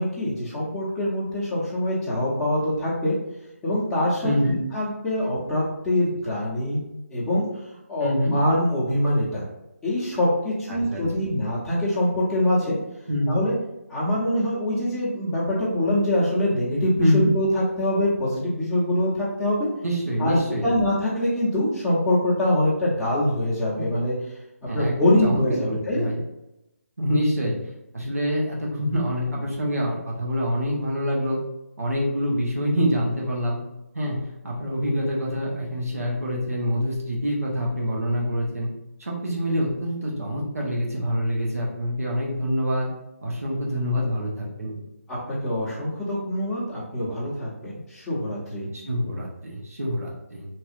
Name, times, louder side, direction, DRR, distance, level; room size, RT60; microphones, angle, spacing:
voice 1, 0.0-3.2 3.6-7.4 7.9-9.4 9.8-12.8 13.3-13.5 13.9-19.7 20.2-24.2 24.6-26.1 45.1-48.7, left 1 dB, 5° left, -10 dB, 0.9 m, -24 dB
voice 2, 4.2-4.5 8.0-8.3 10.7-11.2 13.1-13.4 17.0-17.3 19.8-20.7 24.7-26.2 27.0-27.6 27.9-31.4 31.8-33.6 33.9-34.2 34.4-38.7 39.0-42.9 43.2-44.8 48.7-50.4, equal, 80° right, -3 dB, 1.2 m, -26 dB
3.2 x 2.9 x 2.5 m, 0.90 s
figure-of-eight pair, 155°, 8 cm